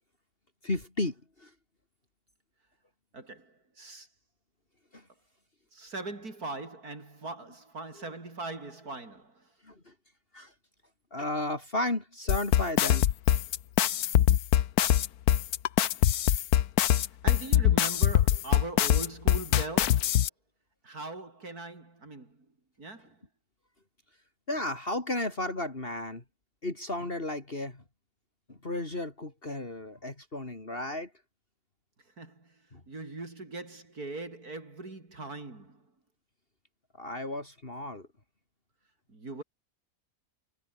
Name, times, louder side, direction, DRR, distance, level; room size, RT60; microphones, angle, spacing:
voice 1, 0.6-1.5 4.9-5.0 9.6-9.9 10.3-10.5 11.1-13.1 24.5-26.2 26.6-27.8 28.5-31.1 32.7-32.8 37.0-38.1, left 1 dB, 40° left, 3.6 m, -34 dB
voice 2, 3.1-4.1 5.7-9.3 17.2-20.1 20.8-22.4 22.8-23.2 32.2-32.5 32.9-35.8 39.1-39.4, right 3 dB, 80° right, 5.2 m, -40 dB
sound 1, 12.3-20.3, left 11 dB, 90° left, 1.4 m, -23 dB
omnidirectional pair, 1.6 m